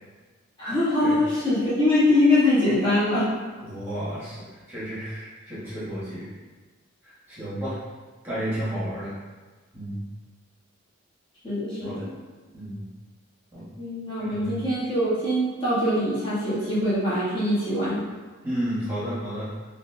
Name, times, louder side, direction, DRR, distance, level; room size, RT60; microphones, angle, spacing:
voice 1, 0.6-3.3 11.4-12.1 13.8-18.0, left 1 dB, 25° left, -11 dB, 1.5 m, -23 dB
voice 2, 3.6-6.3 7.0-7.8 8.2-9.1 9.7-10.0 11.8-12.0 12.5-12.9 13.5-13.7 14.2-14.6 18.4-19.5, equal, 10° right, -12 dB, 1.4 m, -32 dB
4.9 x 2.9 x 2.3 m, 1.3 s
head